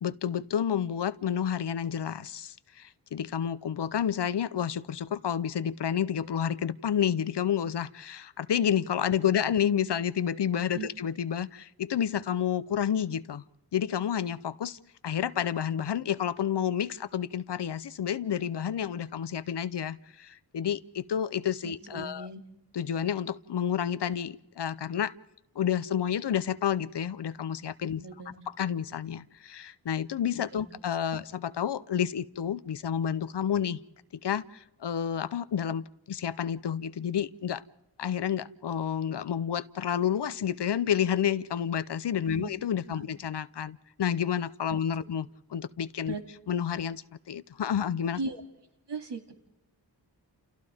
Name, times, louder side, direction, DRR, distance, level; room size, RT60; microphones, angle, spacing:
voice 1, 0.0-13.4 13.7-14.8 15.0-22.3 22.7-25.1 25.6-28.0 28.5-33.8 34.2-37.6 38.0-46.2 46.5-48.2, left 9 dB, 75° left, 0.7 m, -30 dB
voice 2, 21.6-22.4 27.9-28.3 30.5-30.6 42.3-42.5 42.9-43.0 46.1-46.2 48.1-48.4 48.9-49.3, right 4 dB, 80° right, 2.6 m, -37 dB
29.5 x 29.0 x 3.6 m
wide cardioid pair, 90°, 42 cm